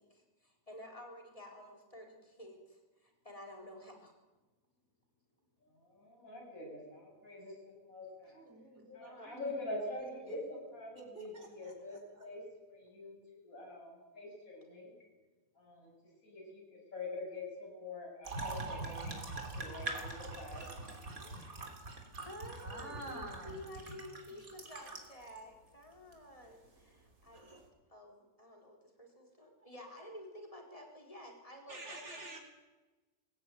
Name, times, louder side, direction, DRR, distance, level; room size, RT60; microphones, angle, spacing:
voice 1, 0.0-4.1 9.0-9.3 22.2-27.4 27.9-32.4, equal, 25° left, 2 dB, 4.3 m, -51 dB
voice 2, 5.6-8.4 8.9-14.9 15.6-15.9 16.2-21.4, left 2 dB, 80° left, -2 dB, 7.7 m, -45 dB
voice 3, 8.3-9.4 10.0-10.4 11.1-11.7 12.1-12.2 22.6-23.8 31.7-32.4, right 1 dB, 55° right, 0 dB, 4.3 m, -49 dB
sound 1, 18.2-25.4 26.1-26.2 27.3-27.6, right 2 dB, 85° right, 3.6 m, -43 dB
22.5 x 17.0 x 9.3 m, 1.2 s
omnidirectional pair, 1.5 m